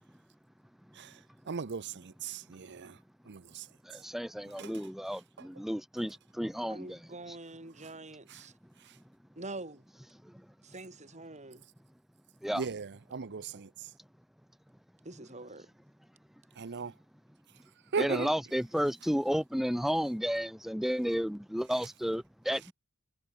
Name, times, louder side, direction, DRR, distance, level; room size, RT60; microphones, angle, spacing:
voice 1, 1.5-2.9 3.3-3.6 4.6-4.7 12.5-13.7 16.6-16.9 17.9-18.3, right 5 dB, 50° right, 0.7 m, -37 dB
voice 2, 3.8-7.0 10.2-10.3 12.4-12.6 18.0-22.7, equal, ahead, 1.2 m, -32 dB
voice 3, 6.7-8.5 9.3-9.8 10.6-11.7 15.0-15.7, right 2 dB, 30° right, 6.9 m, -45 dB
head